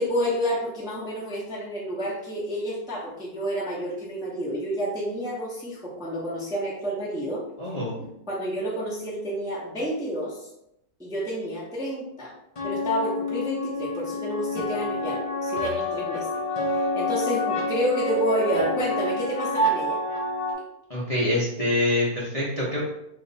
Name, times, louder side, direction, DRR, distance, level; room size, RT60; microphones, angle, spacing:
voice 1, 0.0-7.4 8.0-10.5 11.0-12.3 12.6-16.3 16.7-20.0, equal, 5° right, -6 dB, 0.6 m, -29 dB
voice 2, 7.6-7.9 20.9-22.8, left 1 dB, 30° left, -7 dB, 0.7 m, -25 dB
sound 1, 12.6-20.5, left 1 dB, 55° left, 0.3 m, -28 dB
3.1 x 2.9 x 3.9 m, 0.82 s
omnidirectional pair, 1.7 m